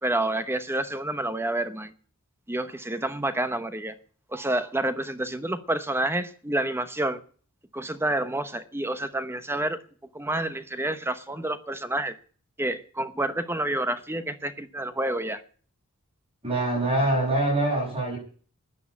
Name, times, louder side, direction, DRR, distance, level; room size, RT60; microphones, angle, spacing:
voice 1, 0.0-1.9 2.5-3.9 4.3-7.2 7.7-9.8 10.1-12.2 12.6-15.4, right 1 dB, 10° right, 1.0 m, -29 dB
voice 2, 16.4-18.2, right 1 dB, 25° right, 7.3 m, -24 dB
13.5 x 9.6 x 8.4 m
head